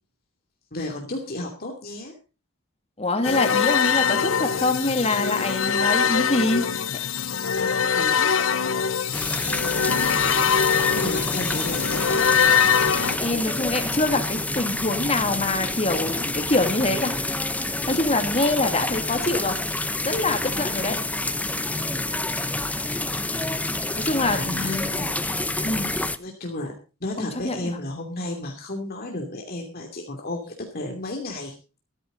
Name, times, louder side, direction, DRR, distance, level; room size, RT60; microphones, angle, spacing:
voice 1, 0.7-2.1 7.6-8.4 10.2-10.5 10.9-12.2 24.3-25.2 26.2-26.7 27.0-31.6, left 2 dB, 45° left, 2 dB, 2.8 m, -33 dB
voice 2, 3.0-6.6 13.2-17.2 17.9-19.6 20.0-21.0 24.0-24.6 25.6-25.9 27.2-27.8, left 2 dB, 30° left, 6 dB, 2.4 m, -24 dB
sound 1, 3.2-13.2, left 7 dB, 75° left, 0.8 m, -23 dB
sound 2, 9.1-26.2, left 2 dB, 5° left, 0.7 m, -28 dB
15.0 x 13.5 x 4.0 m, 0.32 s
head